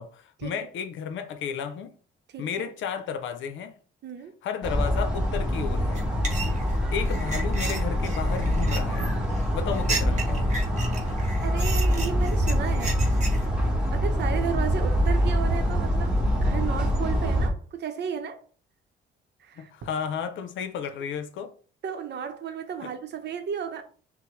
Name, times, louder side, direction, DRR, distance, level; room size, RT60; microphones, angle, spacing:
voice 1, 0.0-1.9 2.4-3.7 4.4-6.0 6.9-9.1 9.5-10.5 19.6-21.5 22.8-22.9, left 7 dB, 75° left, 0.7 m, -33 dB
voice 2, 2.3-2.7 4.0-4.3 11.4-13.1 13.9-18.4 19.4-19.7 21.8-23.8, right 8 dB, 60° right, 0.8 m, -34 dB
sound 1, 4.6-17.5, equal, 5° right, 1.3 m, -25 dB
sound 2, 5.9-13.4, right 3 dB, 35° right, 1.0 m, -34 dB
5.8 x 2.2 x 3.2 m
cardioid pair, 90°, 20 cm